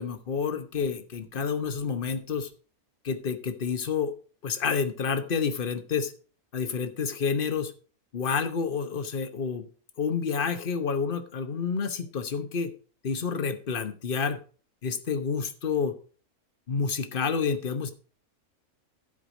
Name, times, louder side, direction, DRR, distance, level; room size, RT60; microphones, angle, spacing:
voice 1, 0.0-2.5 3.0-4.1 4.4-6.1 6.5-7.7 8.1-9.7 10.0-12.7 13.0-14.4 14.8-15.9 16.7-17.9, left 6 dB, 40° left, 9 dB, 1.1 m, -29 dB
12.0 x 4.9 x 6.0 m, 0.40 s
omnidirectional pair, 1.6 m